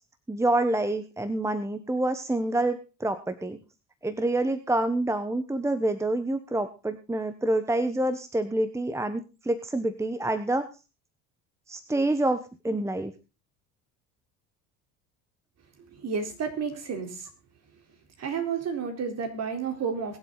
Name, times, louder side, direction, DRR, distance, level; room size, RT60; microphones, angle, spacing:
voice 1, 0.3-3.6 4.0-10.7 11.7-13.1, right 1 dB, 10° right, 10 dB, 1.1 m, -27 dB
voice 2, 15.9-17.3 18.2-20.2, right 6 dB, 45° right, 5 dB, 4.0 m, -31 dB
22.5 x 7.9 x 4.0 m, 0.30 s
supercardioid pair, 105°, 36 cm